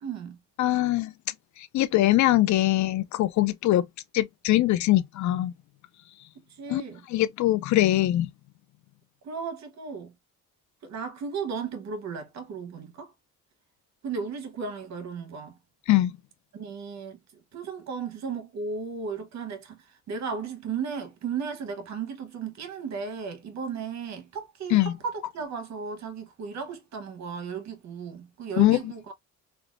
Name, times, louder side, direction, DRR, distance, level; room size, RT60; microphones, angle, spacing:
voice 1, 0.0-0.4 6.5-7.0 9.2-10.1 10.8-13.1 14.0-15.6 16.5-17.2 17.5-29.1, right 5 dB, 65° right, 1.0 m, -35 dB
voice 2, 0.6-1.1 1.7-3.9 4.1-5.5 6.7-6.8 7.1-8.3 15.9-16.1 24.7-24.9 28.6-28.8, left 15 dB, 70° left, 0.5 m, -22 dB
3.4 x 2.3 x 2.4 m
cardioid pair, 90°, 30 cm